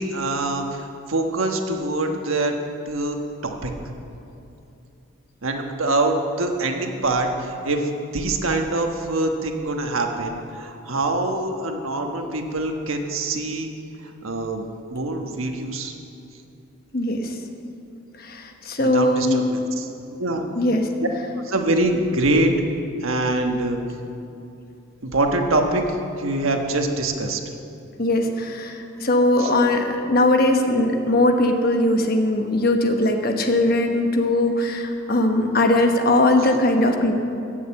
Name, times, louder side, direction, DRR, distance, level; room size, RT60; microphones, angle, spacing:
voice 1, 0.0-2.6 2.9-3.2 3.4-3.7 5.4-13.7 14.2-14.7 14.9-15.9 18.8-19.9 20.2-20.4 21.0-21.1 21.4-22.5 23.0-23.8 25.0-25.8 26.2-27.4 29.4-29.5, right 2 dB, 80° right, 4 dB, 1.3 m, -24 dB
voice 2, 16.9-17.3 18.2-19.4 20.5-20.9 28.0-37.1, left 1 dB, 45° left, 4 dB, 1.2 m, -20 dB
15.0 x 6.8 x 8.6 m, 2.7 s
head